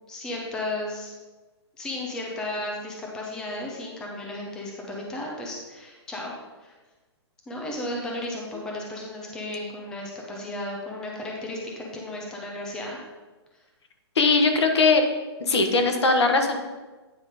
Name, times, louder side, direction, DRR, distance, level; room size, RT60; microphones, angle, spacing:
voice 1, 0.1-1.1 1.8-6.3 6.6-6.7 7.5-13.0, left 1 dB, 5° left, -2 dB, 0.6 m, -34 dB
voice 2, 14.1-15.0 15.5-16.6, left 3 dB, 75° left, 4 dB, 1.3 m, -20 dB
9.2 x 3.8 x 5.0 m, 1.2 s
hypercardioid pair, 170°, 14 cm